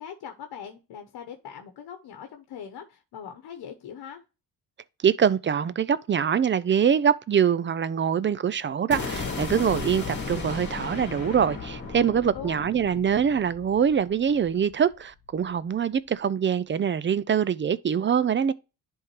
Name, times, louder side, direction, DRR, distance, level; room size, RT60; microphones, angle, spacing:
voice 1, 0.0-4.2 12.3-12.6, left 8 dB, 85° left, 1.0 m, -41 dB
voice 2, 5.0-18.5, right 8 dB, 30° right, 0.4 m, -24 dB
sound 1, 8.9-14.9, left 4 dB, 30° left, 2.1 m, -35 dB
10.5 x 3.7 x 3.0 m
cardioid pair, 85°, 37 cm